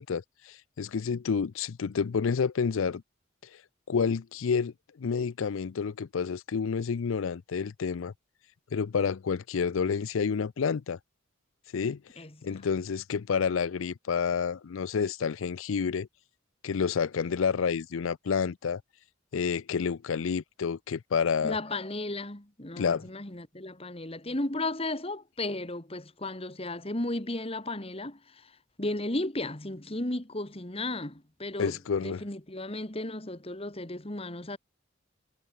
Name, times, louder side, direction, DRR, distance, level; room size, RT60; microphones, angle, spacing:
voice 1, 0.0-3.0 3.9-8.1 8.7-11.0 11.7-12.0 12.4-16.1 16.6-18.8 19.3-21.6 22.8-23.1 31.6-32.2, left 6 dB, 80° left, 0.5 m, -29 dB
voice 2, 21.4-28.5 28.8-34.6, left 2 dB, 30° left, 2.1 m, -34 dB
head